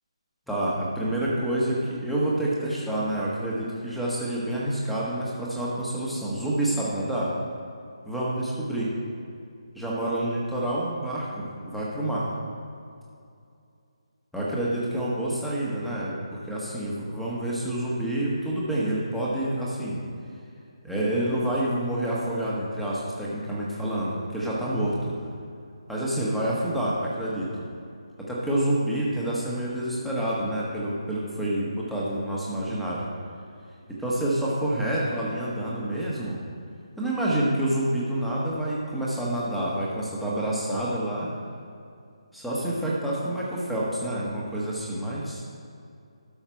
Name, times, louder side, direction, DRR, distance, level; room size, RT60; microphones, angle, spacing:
voice 1, 0.5-7.3 8.0-8.9 9.7-12.3 14.3-20.0 20.8-25.1 25.9-27.5 28.2-33.0 33.9-36.4 37.0-41.3 42.3-45.4, right 1 dB, ahead, -7 dB, 1.4 m, -28 dB
12.5 x 5.7 x 4.6 m, 2.5 s
figure-of-eight pair, 155°, 3 cm